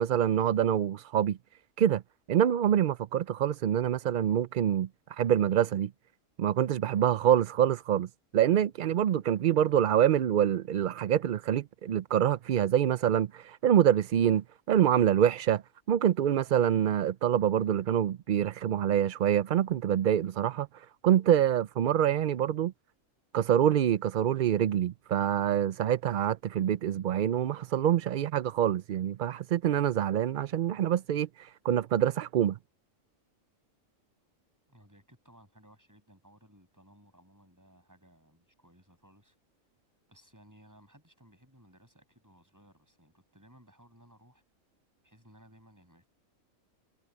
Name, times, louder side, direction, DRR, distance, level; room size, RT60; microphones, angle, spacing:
voice 1, 0.0-1.4 1.8-2.0 2.3-4.9 5.2-5.9 6.4-15.6 15.9-20.7 21.0-22.7 23.3-32.6, right 10 dB, 75° right, 0.4 m, -26 dB
voice 2, 34.7-39.4 40.1-44.4 45.0-46.1, equal, 15° right, 7.3 m, -59 dB
omnidirectional pair, 1.4 m